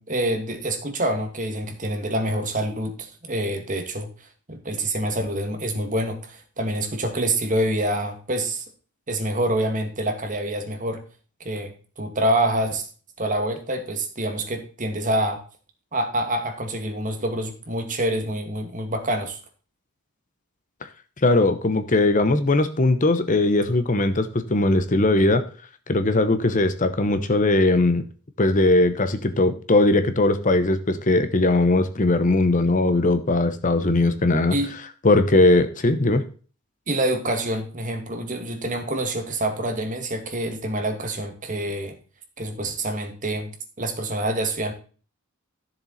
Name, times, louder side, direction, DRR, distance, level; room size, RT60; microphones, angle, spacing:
voice 1, 0.0-8.6 9.1-11.0 11.4-12.9 13.2-15.4 15.9-19.4 34.5-34.8 36.9-42.0 42.4-44.7, right 1 dB, 35° right, 5 dB, 2.1 m, -26 dB
voice 2, 21.2-25.4 25.9-28.0 28.4-34.6 35.0-36.2, left 2 dB, 35° left, 10 dB, 0.9 m, -19 dB
13.5 x 7.2 x 4.2 m, 0.39 s
head